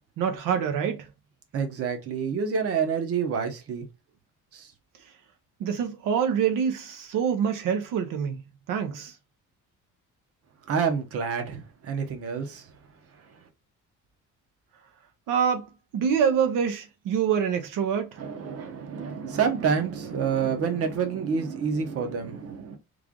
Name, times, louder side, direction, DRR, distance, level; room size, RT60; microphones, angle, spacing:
voice 1, 0.2-1.1 5.6-8.4 8.7-9.1 15.3-18.2, right 7 dB, 90° right, 0.7 m, -26 dB
voice 2, 1.5-3.9 4.5-4.7 10.7-12.7 18.2-22.8, right 6 dB, 50° right, 0.9 m, -28 dB
3.3 x 2.4 x 3.6 m
cardioid pair, 165°, 31 cm